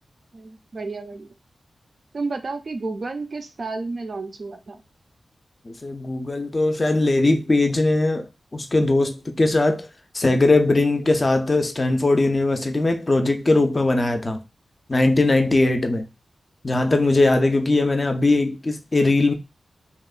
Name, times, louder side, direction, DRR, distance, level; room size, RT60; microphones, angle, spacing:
voice 1, 0.3-1.3 2.1-4.8, right 3 dB, 55° right, 0.4 m, -31 dB
voice 2, 5.7-9.9 10.1-14.4 14.9-16.1 16.6-19.3, left 2 dB, 30° left, 0.4 m, -20 dB
2.9 x 2.1 x 2.3 m
wide cardioid pair, 110°, 0 cm